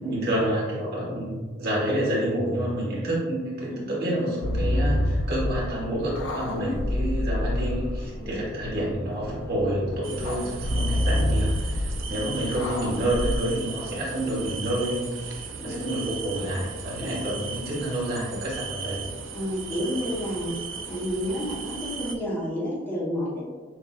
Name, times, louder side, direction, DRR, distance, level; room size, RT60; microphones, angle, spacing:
voice 1, 0.0-19.0, right 1 dB, 50° right, -5 dB, 1.4 m, -29 dB
sound 1, 4.4-13.4, left 1 dB, 85° left, 0.4 m, -28 dB
voice 2, 6.5-6.8 8.2-8.4 12.9-13.0 15.6-15.9 17.1-17.3 19.3-20.5 20.9-23.4, equal, 10° left, -8 dB, 1.0 m, -30 dB
sound 2, 10.0-22.2, right 5 dB, 80° right, 0.4 m, -37 dB
6.4 x 2.4 x 2.4 m, 1.4 s
head